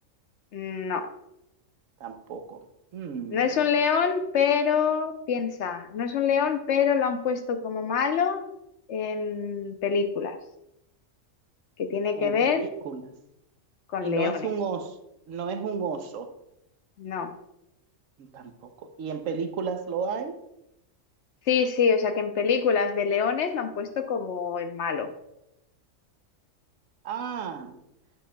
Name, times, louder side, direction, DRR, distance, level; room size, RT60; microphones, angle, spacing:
voice 1, 0.5-1.1 3.3-8.4 8.9-10.4 11.8-12.6 13.9-14.5 17.0-17.3 21.5-25.1, left 6 dB, 65° left, 0.9 m, -25 dB
voice 2, 2.0-2.7 2.9-3.6 12.2-13.1 14.0-15.0 15.3-16.3 18.2-20.4 27.0-27.8, right 6 dB, 80° right, 1.1 m, -33 dB
8.7 x 8.5 x 2.2 m
omnidirectional pair, 1.4 m